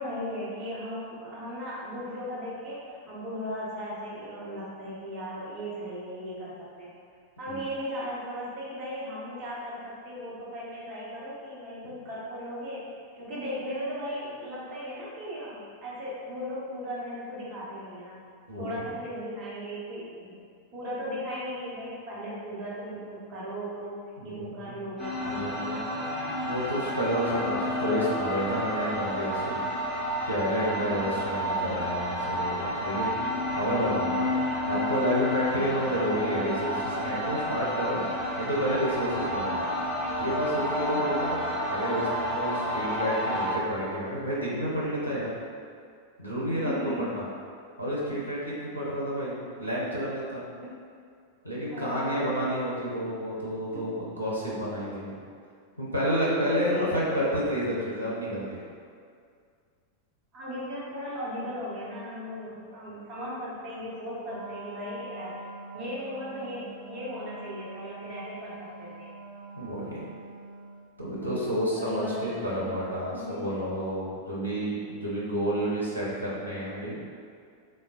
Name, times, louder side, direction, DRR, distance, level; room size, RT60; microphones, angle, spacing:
voice 1, 0.0-6.9 7.4-18.2 18.6-20.4 20.7-26.1 30.7-31.1 40.9-41.3 46.5-47.2 48.1-48.2 50.6-50.7 51.7-52.4 53.7-53.9 56.7-57.0 60.3-65.3 65.7-69.1 71.2-72.9 73.1-73.5, equal, 35° right, -8 dB, 0.9 m, -37 dB
voice 2, 24.2-24.7 25.2-25.8 26.4-29.6 30.2-33.2 33.5-34.3 34.7-39.6 40.2-41.4 41.7-45.3 46.2-46.7 47.0-47.2 47.8-50.4 51.4-55.1 55.8-58.6 69.6-70.0 71.0-77.0, equal, 90° left, -7 dB, 0.6 m, -30 dB
sound 1, 25.0-43.5, equal, 15° left, 1.1 m, -30 dB
Wind instrument woodwind instrument, 64.2-70.9, right 2 dB, 15° right, 1.3 m, -44 dB
3.2 x 2.2 x 2.4 m, 2.2 s
figure-of-eight pair, 90°, 0 cm